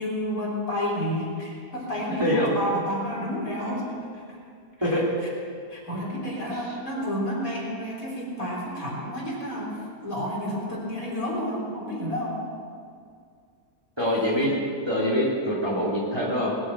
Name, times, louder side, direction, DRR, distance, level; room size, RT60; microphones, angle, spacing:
voice 1, 0.0-4.4 4.8-5.3 5.7-12.4, equal, 60° left, -5 dB, 4.2 m, -30 dB
voice 2, 2.2-2.5 4.8-5.0 6.5-6.6 14.0-14.5 14.9-16.5, equal, 15° right, -6 dB, 3.1 m, -24 dB
20.5 x 7.8 x 7.5 m, 2.3 s
omnidirectional pair, 1.7 m